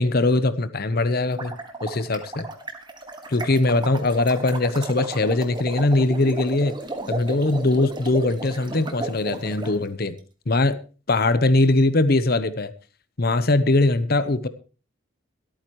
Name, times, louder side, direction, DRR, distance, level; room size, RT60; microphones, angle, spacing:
voice 1, 0.0-1.5 1.8-2.5 3.3-6.8 7.1-10.1 10.5-10.8 11.1-12.7 13.2-14.5, left 2 dB, 45° left, 14 dB, 0.8 m, -21 dB
sound 1, 1.4-9.7, right 2 dB, 20° right, 1.6 m, -34 dB
23.0 x 8.9 x 3.1 m, 0.37 s
head